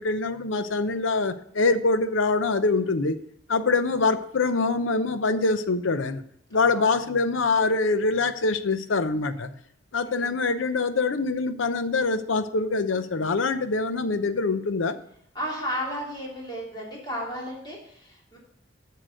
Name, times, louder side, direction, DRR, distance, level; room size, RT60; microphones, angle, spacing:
voice 1, 0.0-3.2 3.5-6.2 6.5-9.5 9.9-15.0, left 3 dB, 90° left, 11 dB, 0.7 m, -24 dB
voice 2, 10.0-10.4 15.3-18.4, equal, 25° left, -4 dB, 3.0 m, -34 dB
7.6 x 6.6 x 6.5 m, 0.69 s
head